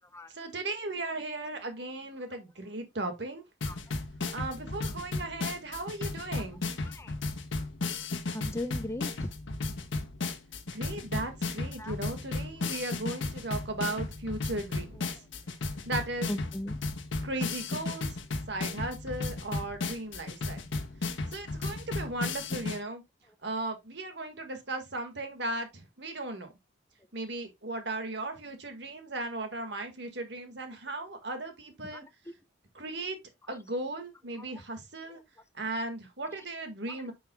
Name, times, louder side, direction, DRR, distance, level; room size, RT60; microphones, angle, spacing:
voice 1, 0.3-3.4 4.3-6.6 10.7-15.0 15.8-16.3 17.2-18.2 18.5-20.7 21.3-23.0 23.4-26.5 27.1-32.0 32.7-33.2 33.5-35.2 35.5-37.1, right 2 dB, 65° right, 1.7 m, -36 dB
sound 1, 3.6-22.8, left 3 dB, 90° left, 1.2 m, -34 dB
voice 2, 6.8-7.1 8.3-9.3 11.8-12.0 14.9-15.0 16.3-16.7 31.8-32.4 33.4-33.6 34.3-34.4 35.1-35.2 36.4-36.5 36.9-37.1, left 1 dB, 15° left, 0.6 m, -39 dB
9.2 x 5.5 x 2.2 m
head